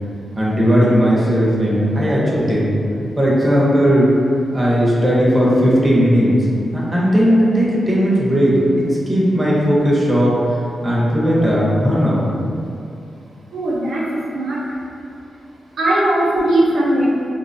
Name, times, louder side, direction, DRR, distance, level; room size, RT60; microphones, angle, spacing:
voice 1, 0.4-2.7 3.2-4.1 4.5-6.3 6.7-8.6 9.1-12.2, equal, 10° right, -7 dB, 0.6 m, -16 dB
voice 2, 13.5-14.6 15.8-17.1, right 1 dB, 80° right, -6 dB, 0.7 m, -18 dB
4.0 x 2.1 x 2.5 m, 2.5 s
wide cardioid pair, 140°, 0 cm